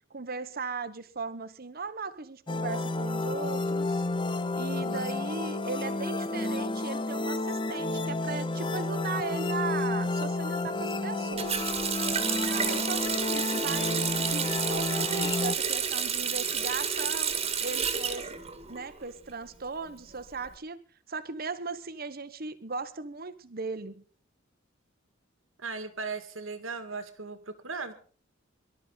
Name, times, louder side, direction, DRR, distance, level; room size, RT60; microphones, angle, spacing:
voice 1, 0.1-4.0 4.5-11.8 12.2-17.3 17.6-18.3 18.7-20.8 21.1-24.0, right 4 dB, 50° right, 12 dB, 1.2 m, -37 dB
sound 1, 2.5-15.5, left 2 dB, 25° left, 0.8 m, -31 dB
Water tap faucet, 11.4-19.1 19.4-20.5, right 7 dB, 30° right, 1.9 m, -30 dB
voice 2, 25.6-27.9, right 4 dB, 85° right, 9 dB, 2.2 m, -37 dB
23.5 x 12.5 x 4.1 m, 0.42 s
head